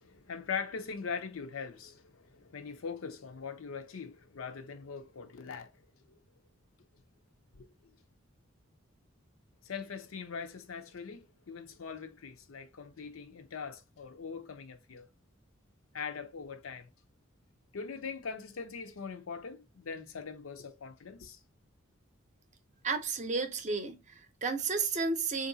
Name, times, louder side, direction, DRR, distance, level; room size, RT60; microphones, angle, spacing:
voice 1, 0.0-5.7 7.6-7.7 9.6-15.1 15.9-16.9 17.7-21.4, left 5 dB, 80° left, 0.6 m, -41 dB
voice 2, 22.8-25.5, right 4 dB, 35° right, 0.6 m, -32 dB
3.7 x 2.5 x 2.6 m
head